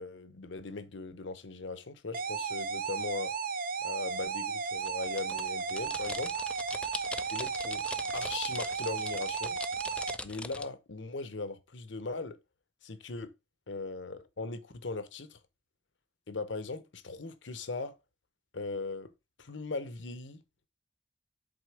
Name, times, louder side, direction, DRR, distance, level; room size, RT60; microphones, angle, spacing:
voice 1, 0.0-3.3 3.8-6.3 7.3-7.8 8.1-9.6 10.2-12.4 12.8-13.3 13.7-15.4 16.3-17.9 18.5-19.1 19.4-20.4, left 3 dB, 70° left, 0.9 m, -39 dB
sound 1, 2.1-10.1, right 5 dB, 50° right, 0.6 m, -34 dB
sound 2, 4.8-10.7, left 2 dB, 5° left, 0.4 m, -42 dB
8.0 x 3.8 x 4.8 m
head